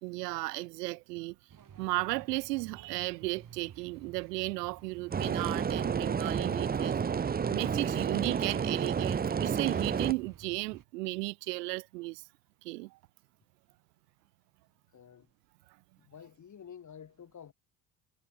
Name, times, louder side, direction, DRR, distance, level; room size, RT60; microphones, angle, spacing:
voice 1, 0.0-1.4 1.8-7.0 7.5-12.2 12.6-13.0, right 22 dB, 85° right, 0.6 m, -35 dB
sound 1, 1.5-10.8, right 8 dB, 40° right, 5.5 m, -52 dB
sound 2, 5.1-10.1, right 7 dB, 20° right, 0.7 m, -30 dB
voice 2, 14.9-15.3 16.0-17.5, left 8 dB, 40° left, 3.6 m, -50 dB
hypercardioid pair, 70°, 47 cm